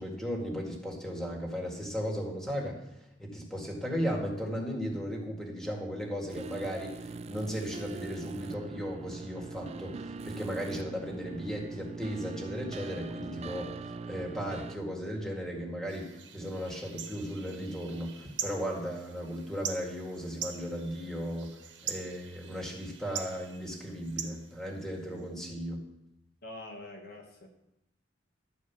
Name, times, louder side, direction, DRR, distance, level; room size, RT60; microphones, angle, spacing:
voice 1, 0.0-2.9 3.2-25.8, equal, 5° left, -1 dB, 2.0 m, -36 dB
sound 1, 6.3-14.8, right 3 dB, 35° right, 0.3 m, -42 dB
sound 2, 15.9-25.3, right 8 dB, 75° right, 1.1 m, -43 dB
voice 2, 26.4-27.5, left 2 dB, 55° left, 2 dB, 1.2 m, -45 dB
12.0 x 4.8 x 7.1 m, 0.84 s
head